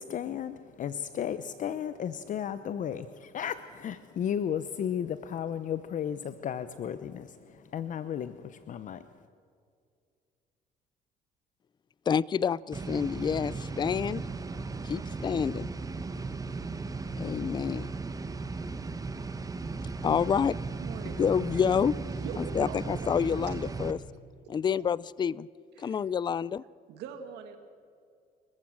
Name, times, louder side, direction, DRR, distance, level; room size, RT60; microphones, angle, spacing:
voice 1, 0.0-9.1, left 9 dB, 50° left, 13 dB, 0.8 m, -34 dB
voice 2, 12.1-14.2 14.8-15.7 17.2-17.9 20.0-20.6 21.2-22.0 22.4-24.0 24.5-25.5 25.8-26.6, left 7 dB, 25° left, 22 dB, 0.4 m, -28 dB
sound 1, 12.7-23.9, right 3 dB, 20° right, 1.1 m, -36 dB
voice 3, 20.8-21.6 22.2-23.6 25.8-26.0 26.9-27.6, right 7 dB, 90° right, 6 dB, 2.0 m, -43 dB
29.5 x 15.0 x 6.3 m, 2.3 s
cardioid pair, 110°, 17 cm